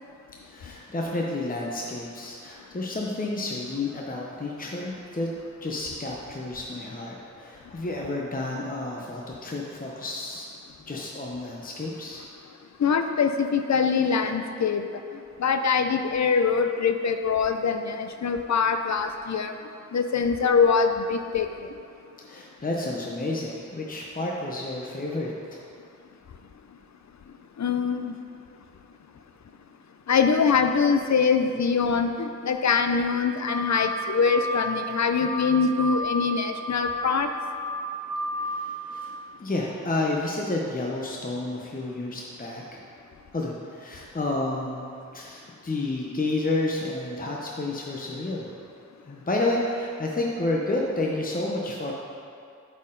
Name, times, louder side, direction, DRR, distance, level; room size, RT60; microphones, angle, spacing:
voice 1, 0.4-5.3 5.6-10.5 10.9-12.2 22.3-25.6 38.4-39.1 39.4-42.8 43.3-48.5 49.1-51.9, left 2 dB, 30° left, -2 dB, 0.7 m, -30 dB
voice 2, 12.8-14.8 15.4-19.5 19.9-21.7 27.6-28.2 30.1-37.3, left 5 dB, 65° left, 7 dB, 0.5 m, -23 dB
sound 1, 33.5-34.0 34.2-34.7 35.0-35.5 35.8-36.3 36.6-37.0 37.3-37.8 38.1-38.6, left 1 dB, 75° right, 0.8 m, -31 dB
8.1 x 4.2 x 3.8 m, 2.4 s
cardioid pair, 40°, 30 cm